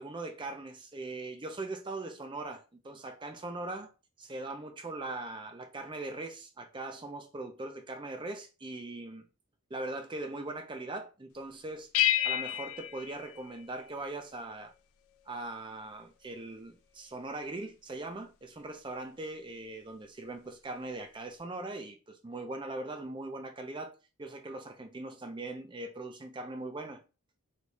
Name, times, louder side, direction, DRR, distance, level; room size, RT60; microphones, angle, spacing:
voice 1, 0.0-3.9 4.2-9.2 9.7-11.9 12.2-14.7 15.3-23.9 24.2-27.0, right 2 dB, 20° right, 0.4 m, -40 dB
sound 1, 11.9-14.2, left 12 dB, 75° left, 0.3 m, -31 dB
3.3 x 3.1 x 2.6 m
head